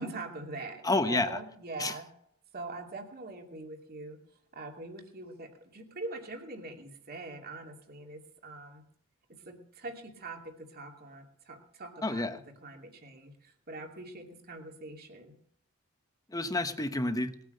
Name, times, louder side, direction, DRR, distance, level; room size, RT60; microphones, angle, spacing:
voice 1, 0.0-2.1 2.5-4.2 4.5-8.8 9.5-10.4 10.7-15.3, right 2 dB, 45° right, 3 dB, 2.7 m, -43 dB
voice 2, 0.8-1.4 1.8-1.9 12.0-12.4 16.3-17.3, left 2 dB, 15° left, 9 dB, 1.1 m, -29 dB
19.5 x 9.3 x 6.6 m, 0.69 s
head